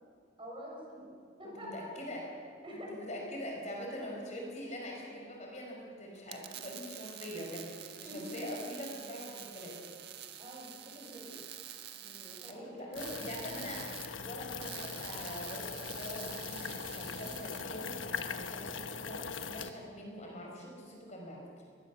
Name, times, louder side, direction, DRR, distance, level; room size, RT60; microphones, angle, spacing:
voice 1, 0.4-1.1 1.4-1.9 2.6-3.1 8.0-8.4 10.4-11.4 12.0-13.2, equal, 25° right, -3 dB, 7.2 m, -47 dB
voice 2, 1.6-2.3 2.9-9.8 12.5-19.2 19.5-21.7, equal, 35° left, 0 dB, 5.1 m, -43 dB
sound 1, 6.2-17.6, right 10 dB, 55° right, 1.6 m, -47 dB
sound 2, 12.9-19.7, left 5 dB, 90° left, 1.3 m, -41 dB
23.0 x 21.0 x 7.2 m, 2.2 s
head